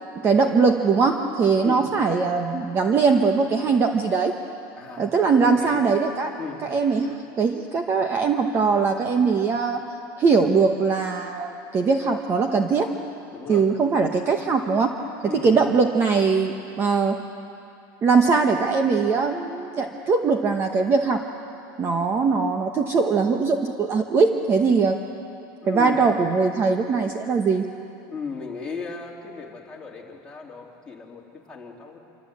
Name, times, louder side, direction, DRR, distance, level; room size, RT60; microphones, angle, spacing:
voice 1, 0.1-4.3 5.0-6.3 6.6-9.9 10.2-12.9 13.5-14.9 15.2-17.3 18.0-21.3 21.8-25.0 25.7-27.6, right 4 dB, 20° right, 5 dB, 1.0 m, -21 dB
voice 2, 4.7-5.1 5.4-5.8 6.4-6.6 13.3-13.7 15.2-15.7 25.6-26.0 28.1-32.0, left 5 dB, 10° left, -3 dB, 3.1 m, -35 dB
27.0 x 25.0 x 8.5 m, 2.8 s
supercardioid pair, 170°, 11 cm